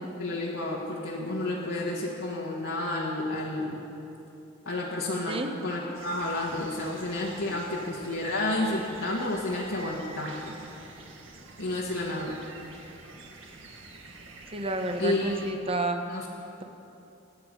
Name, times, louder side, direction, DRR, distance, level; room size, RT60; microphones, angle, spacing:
voice 1, 0.2-3.8 4.6-10.5 11.6-12.4 15.0-15.3 16.1-16.2, left 2 dB, 80° left, -5 dB, 1.7 m, -31 dB
sound 1, 5.9-15.5, right 3 dB, 80° right, 1.8 m, -47 dB
voice 2, 14.5-16.1, right 2 dB, 30° right, 5 dB, 1.1 m, -30 dB
25.0 x 9.3 x 5.4 m, 2.9 s
head